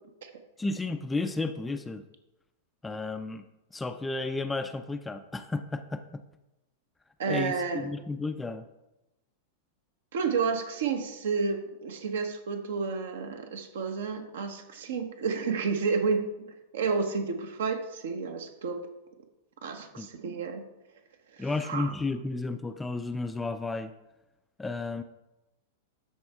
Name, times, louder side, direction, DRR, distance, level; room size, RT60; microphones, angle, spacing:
voice 1, 0.6-2.0 2.8-3.4 3.7-6.2 7.3-8.6 20.0-20.1 21.4-23.9 24.6-25.0, left 3 dB, 10° left, 9 dB, 0.4 m, -32 dB
voice 2, 7.2-7.8 10.1-16.3 16.7-18.8 19.6-20.6 21.3-21.9, right 5 dB, 60° right, 6 dB, 1.0 m, -30 dB
13.0 x 4.4 x 3.5 m, 0.96 s
figure-of-eight pair, 95°, 0 cm